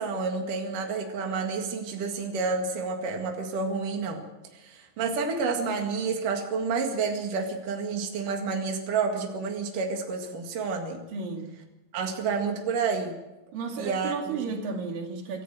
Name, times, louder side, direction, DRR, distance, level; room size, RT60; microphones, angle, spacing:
voice 1, 0.0-4.2 4.5-11.0 11.9-13.1 13.8-14.4, right 4 dB, 70° right, 3 dB, 3.6 m, -29 dB
voice 2, 11.1-11.5 13.5-15.4, right 4 dB, 90° right, 3 dB, 4.0 m, -33 dB
26.5 x 14.0 x 7.7 m, 1.0 s
omnidirectional pair, 3.9 m